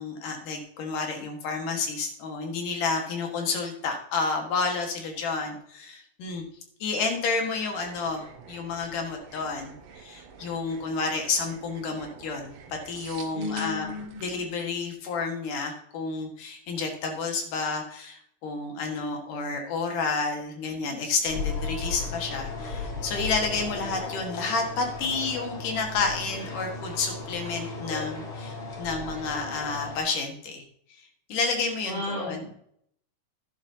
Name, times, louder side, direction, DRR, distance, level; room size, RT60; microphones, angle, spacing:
voice 1, 0.0-6.4 6.8-13.9 14.2-30.6 31.0-32.5, left 4 dB, 75° left, 3 dB, 3.3 m, -30 dB
sound 1, 7.7-14.4, right 6 dB, 70° right, 1.1 m, -47 dB
voice 2, 13.3-14.2 31.8-32.5, left 3 dB, 15° right, -5 dB, 3.4 m, -33 dB
sound 2, 21.3-30.0, left 4 dB, 40° left, 2.5 m, -35 dB
11.5 x 11.0 x 2.9 m, 0.68 s
omnidirectional pair, 3.8 m